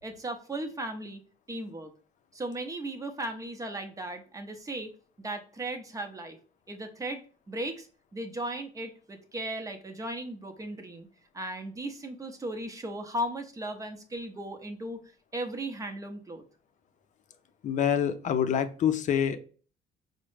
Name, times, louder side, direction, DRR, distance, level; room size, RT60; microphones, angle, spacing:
voice 1, 0.0-1.2 1.5-1.9 2.3-4.9 5.2-6.4 6.7-11.1 11.3-15.0 15.3-16.4, right 1 dB, 20° right, 5 dB, 0.7 m, -36 dB
voice 2, 17.6-19.4, left 8 dB, 45° left, 10 dB, 0.5 m, -26 dB
4.6 x 2.1 x 3.1 m, 0.41 s
cardioid pair, 110°, 17 cm